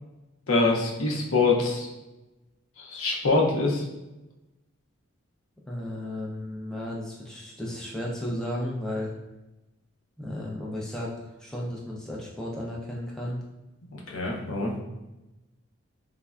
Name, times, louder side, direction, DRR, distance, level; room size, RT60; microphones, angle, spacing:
voice 1, 0.5-1.9 2.8-3.8 13.9-14.7, left 3 dB, 75° left, -1 dB, 0.6 m, -24 dB
voice 2, 5.7-9.1 10.2-13.4, left 1 dB, 5° left, -4 dB, 0.4 m, -34 dB
3.4 x 2.1 x 2.3 m, 1.0 s
head